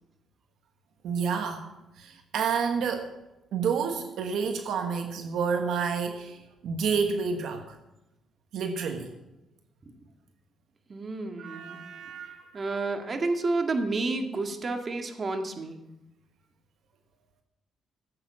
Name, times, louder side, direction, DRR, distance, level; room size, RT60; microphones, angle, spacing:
voice 1, 1.0-1.7 2.0-3.1 3.5-7.8 8.5-9.1 11.4-12.6, right 6 dB, 75° right, 6 dB, 1.3 m, -29 dB
voice 2, 10.9-11.8 12.5-15.8, right 3 dB, 40° right, 5 dB, 2.0 m, -30 dB
15.0 x 8.1 x 7.4 m, 0.96 s
cardioid pair, 90°, 0 cm